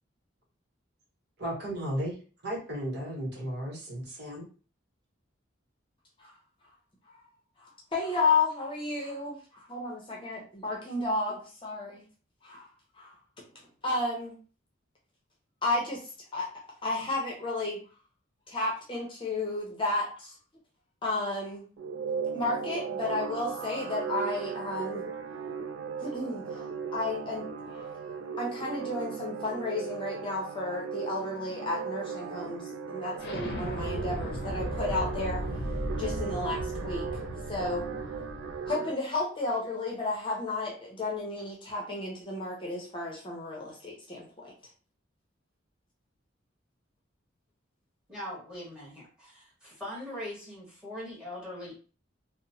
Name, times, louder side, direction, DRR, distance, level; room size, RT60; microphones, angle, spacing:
voice 1, 1.4-2.2 2.4-4.5, right 1 dB, 60° right, -3 dB, 1.0 m, -34 dB
voice 2, 7.6-12.0 12.4-12.7 13.0-13.1 13.8-14.4 15.6-16.0 16.3-16.5 16.8-17.8 18.5-20.3 21.0-21.6 22.3-25.1 26.0-26.6 26.9-27.9 28.4-35.4 36.0-37.1 37.5-37.9 38.7-44.5, left 2 dB, 25° left, -2 dB, 0.7 m, -32 dB
sound 1, 21.8-38.9, right 6 dB, 85° right, 0.3 m, -37 dB
Explosion, 33.2-38.7, equal, 60° left, 0.6 m, -36 dB
voice 3, 48.1-51.7, left 1 dB, 5° right, -7 dB, 1.3 m, -41 dB
2.9 x 2.1 x 2.7 m, 0.37 s
head